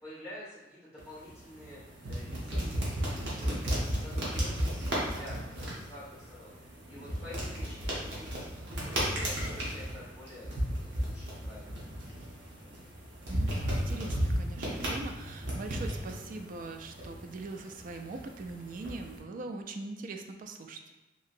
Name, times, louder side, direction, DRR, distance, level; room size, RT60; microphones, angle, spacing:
voice 1, 0.0-2.8 3.1-10.5 10.8-11.8, left 1 dB, 5° right, -12 dB, 1.3 m, -49 dB
sound 1, 1.0-19.2, equal, 75° right, 0.9 m, -35 dB
voice 2, 13.3-20.8, right 3 dB, 50° right, 5 dB, 0.3 m, -41 dB
2.8 x 2.8 x 2.5 m, 1.1 s
head